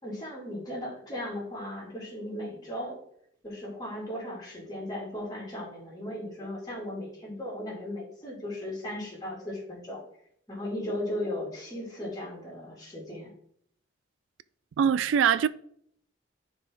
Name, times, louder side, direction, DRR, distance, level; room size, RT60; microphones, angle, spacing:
voice 1, 0.0-3.0 3.4-10.0 10.5-13.3, left 1 dB, 20° left, 2.8 m, -36 dB
voice 2, 14.8-15.5, right 8 dB, 80° right, 0.3 m, -22 dB
10.5 x 4.6 x 3.8 m
head